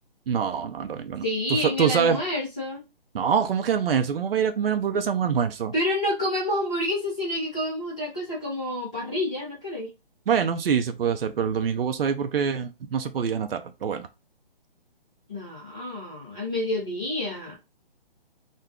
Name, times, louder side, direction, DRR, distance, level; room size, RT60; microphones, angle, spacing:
voice 1, 0.3-1.2 1.5-2.2 3.1-5.7 10.3-14.1, right 7 dB, 75° right, 0.5 m, -25 dB
voice 2, 1.2-2.8 5.7-9.9 15.3-17.6, left 1 dB, 5° left, 0.5 m, -28 dB
2.5 x 2.3 x 3.5 m
hypercardioid pair, 170°, 29 cm